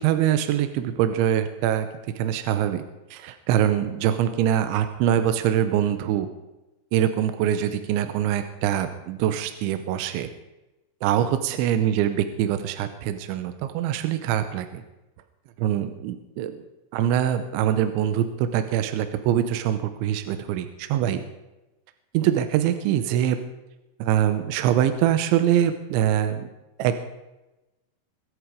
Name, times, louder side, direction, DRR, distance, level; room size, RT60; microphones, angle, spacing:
voice 1, 0.0-1.9 2.2-2.8 3.1-6.3 6.9-10.3 11.0-14.8 15.6-16.6 16.9-21.2 22.1-23.4 24.0-26.5 26.8-27.1, right 10 dB, 80° right, 9 dB, 3.1 m, -24 dB
24.0 x 8.0 x 5.2 m, 1.0 s
omnidirectional pair, 5.6 m